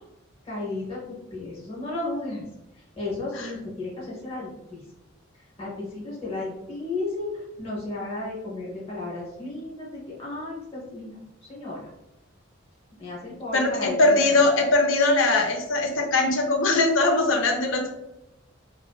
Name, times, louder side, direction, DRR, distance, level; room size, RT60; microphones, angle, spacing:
voice 1, 0.5-2.5 3.0-4.8 5.6-7.3 7.6-11.2 11.5-11.8 13.0-14.4, left 2 dB, 30° left, -5 dB, 0.7 m, -34 dB
voice 2, 13.5-17.9, left 2 dB, 75° left, 4 dB, 0.5 m, -21 dB
2.4 x 2.3 x 2.2 m, 0.90 s
head